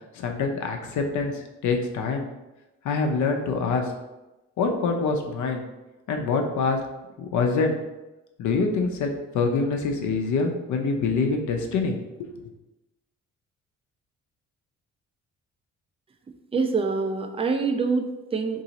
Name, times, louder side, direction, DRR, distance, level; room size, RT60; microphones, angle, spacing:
voice 1, 0.1-2.3 2.8-3.9 4.6-5.6 6.1-6.8 7.2-7.8 8.4-12.5, left 4 dB, 75° left, 3 dB, 0.6 m, -25 dB
voice 2, 16.5-18.6, right 4 dB, 20° right, 5 dB, 0.4 m, -25 dB
2.9 x 2.7 x 3.9 m, 1.0 s
cardioid pair, 90°, 30 cm